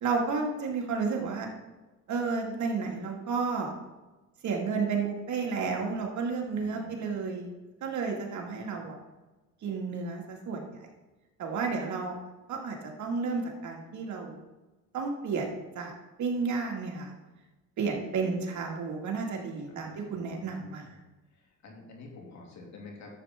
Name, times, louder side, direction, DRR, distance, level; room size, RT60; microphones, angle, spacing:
voice 1, 0.0-1.5 2.1-3.7 4.4-7.5 7.8-9.0 9.6-10.6 11.4-12.1 12.5-14.4 14.9-15.9 16.2-17.1 17.8-20.9, right 4 dB, 70° right, 1 dB, 2.2 m, -32 dB
voice 2, 6.6-7.1 19.7-20.8 21.6-23.2, left 3 dB, 65° left, 0 dB, 2.7 m, -49 dB
11.5 x 7.8 x 3.7 m, 1.1 s
cardioid pair, 90°, 30 cm